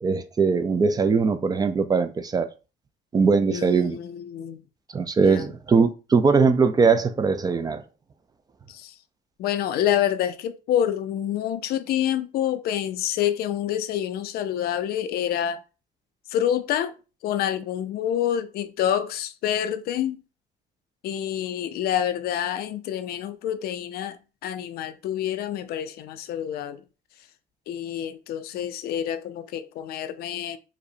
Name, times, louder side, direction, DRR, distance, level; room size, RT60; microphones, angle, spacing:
voice 1, 0.0-2.5 3.1-4.0 4.9-7.8, right 5 dB, 25° right, 0.3 m, -21 dB
voice 2, 3.5-4.6 5.2-5.5 8.7-8.9 9.4-15.6 16.3-16.9 17.2-20.2 21.0-26.8 27.7-30.6, left 10 dB, 65° left, 0.4 m, -27 dB
4.8 x 2.1 x 2.6 m
cardioid pair, 110°, 17 cm